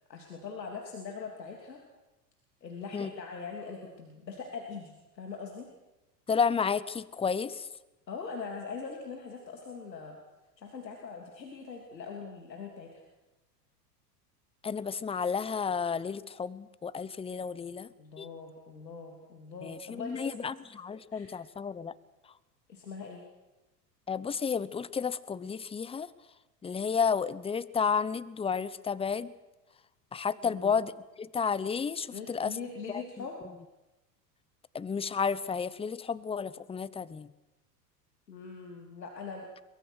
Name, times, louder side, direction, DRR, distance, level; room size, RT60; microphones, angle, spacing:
voice 1, 0.1-1.8 2.6-5.7 8.1-10.2 10.6-13.0 18.0-20.5 21.1-21.3 22.7-23.2 30.4-30.8 32.1-33.4 38.3-39.5, left 5 dB, 90° left, 1 dB, 3.2 m, -42 dB
voice 2, 6.3-7.7 14.6-17.9 18.2-18.3 19.6-21.9 24.1-26.1 26.6-29.3 30.1-32.6 32.9-33.0 34.7-37.3, left 6 dB, 10° left, 18 dB, 0.8 m, -32 dB
23.0 x 21.5 x 6.5 m, 1.0 s
hypercardioid pair, 90°, 49 cm